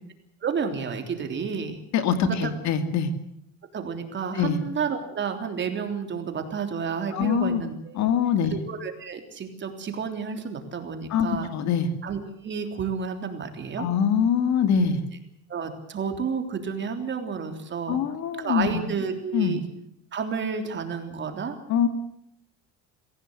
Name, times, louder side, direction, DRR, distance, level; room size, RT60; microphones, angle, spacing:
voice 1, 0.4-1.8 2.3-2.5 3.7-8.1 8.5-11.5 12.0-13.9 15.5-18.0 18.4-19.6 20.1-21.6, right 6 dB, 35° right, 5 dB, 3.4 m, -31 dB
voice 2, 1.9-3.1 4.4-4.6 7.1-7.6 8.0-8.6 11.1-11.9 13.8-15.0 17.9-18.8 19.3-19.6 21.7-21.9, left 7 dB, 60° left, 9 dB, 2.5 m, -23 dB
24.0 x 16.5 x 8.0 m, 0.73 s
cardioid pair, 130°, 31 cm